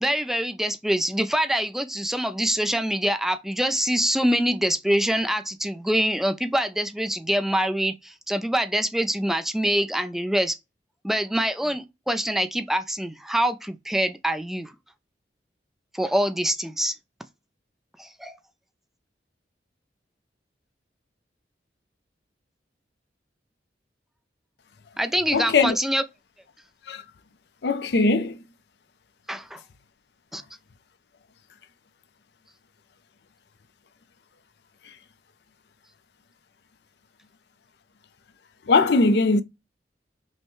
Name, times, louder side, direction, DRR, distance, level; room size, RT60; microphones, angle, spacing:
voice 1, 0.0-10.6 11.0-14.7 15.9-16.9 18.0-18.3 25.0-26.0 29.3-29.6 30.3-30.4, equal, ahead, 0.3 m, -25 dB
voice 2, 25.3-25.7 26.9-27.0 27.6-28.4 38.7-39.4, left 3 dB, 65° left, 0.5 m, -20 dB
5.4 x 2.1 x 3.1 m
head